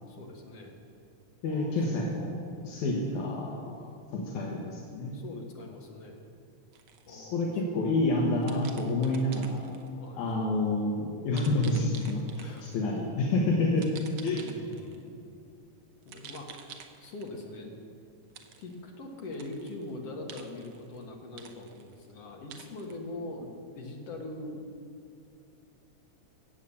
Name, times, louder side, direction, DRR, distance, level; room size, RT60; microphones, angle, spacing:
voice 1, 0.1-0.7 1.4-1.8 2.1-2.4 5.1-6.2 7.1-7.9 9.9-10.3 12.4-12.7 14.3-15.2 16.1-16.6 17.0-17.8 18.6-24.6, left 2 dB, 55° left, 1 dB, 2.4 m, -42 dB
voice 2, 1.4-2.4 2.6-3.5 3.8-5.1 7.1-9.7 10.2-13.9 14.2-14.4, left 2 dB, 75° left, -2 dB, 2.7 m, -28 dB
sound 1, 6.7-7.1 8.4-9.9 11.4-12.8 13.8-15.0 16.0-17.4 18.3-18.8 19.3-19.9 20.3-21.0 21.4-22.1 22.5-23.0, right 7 dB, 70° right, 1.3 m, -49 dB
16.5 x 8.2 x 7.1 m, 2.5 s
omnidirectional pair, 3.5 m